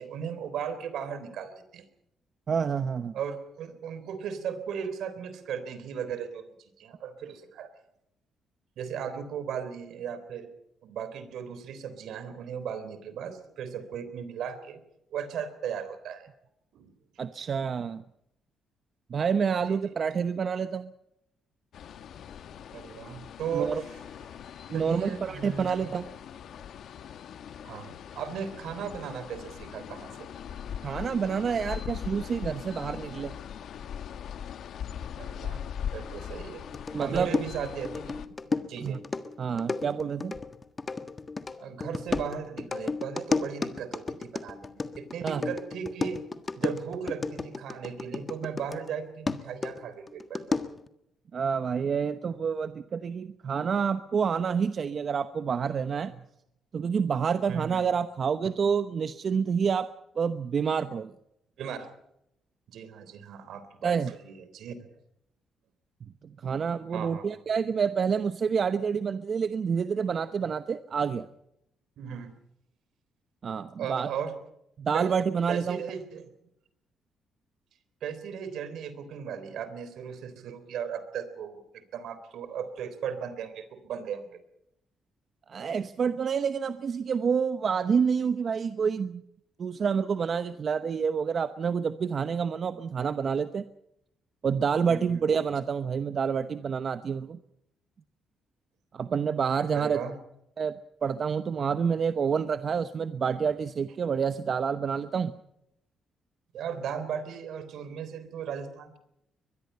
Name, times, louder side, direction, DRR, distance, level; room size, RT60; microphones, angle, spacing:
voice 1, 0.0-1.8 3.1-7.7 8.8-10.5 10.8-14.8 15.1-16.3 16.7-16.9 19.7-19.9 22.7-24.0 24.7-26.0 27.6-30.3 35.2-36.7 37.0-39.0 41.6-46.2 46.6-50.6 56.1-56.2 57.5-57.9 61.6-61.9 62.7-64.9 66.4-66.6 66.9-67.3 72.0-72.3 73.8-74.4 74.9-75.1 75.5-76.3 78.0-84.4 94.9-95.2 95.5-95.6 99.7-100.2 103.4-103.5 106.5-109.0, right 7 dB, 75° right, 12 dB, 3.6 m, -37 dB
voice 2, 2.5-3.1 17.2-18.0 19.1-20.9 23.5-23.8 24.7-26.0 30.8-33.3 36.9-37.4 38.8-39.0 39.4-40.3 45.2-45.5 51.3-56.1 56.7-59.9 60.2-61.1 63.8-64.1 66.4-71.3 73.4-74.1 74.8-75.8 85.5-89.2 89.6-93.7 94.4-97.4 98.9-100.0 100.6-100.7 101.0-105.3, right 6 dB, 50° right, 11 dB, 0.9 m, -28 dB
sound 1, 21.7-38.3, left 8 dB, 70° left, 1.3 m, -40 dB
sound 2, 36.7-48.9 49.3-50.9, left 3 dB, 30° left, 1.5 m, -33 dB
23.0 x 22.0 x 5.6 m, 0.80 s
cardioid pair, 90°, 0 cm